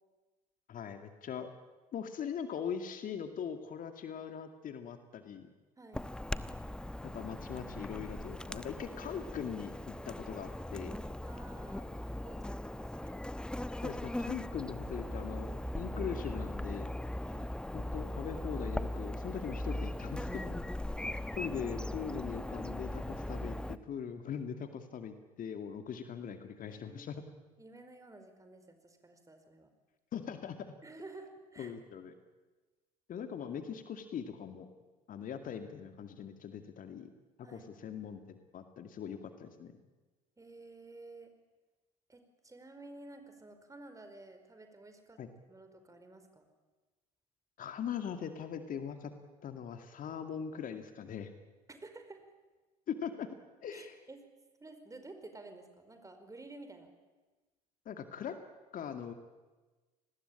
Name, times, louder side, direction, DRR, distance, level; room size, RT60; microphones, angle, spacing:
voice 1, 0.7-1.5 1.9-5.5 7.0-11.0 13.8-16.9 17.7-20.6 21.4-27.2 30.1-30.7 31.6-32.1 33.1-34.7 35.1-37.1 37.4-39.7 45.2-45.3 47.6-49.1 49.4-51.3 52.9-53.3 53.6-54.0 57.9-58.4 58.7-59.1, left 7 dB, 40° left, 7 dB, 2.3 m, -41 dB
Chirp tweet / Buzz, 5.9-23.8, left 1 dB, 5° left, 1.0 m, -39 dB
voice 2, 11.3-13.2 17.2-17.5 20.9-21.2 26.7-27.1 27.6-29.7 30.8-31.7 37.4-37.7 40.4-41.3 42.1-45.2 45.5-46.5 51.7-52.2 53.7-54.2 54.6-56.9, right 2 dB, 15° right, 7 dB, 5.0 m, -52 dB
29.0 x 20.0 x 8.8 m, 1.2 s
figure-of-eight pair, 65°, 20 cm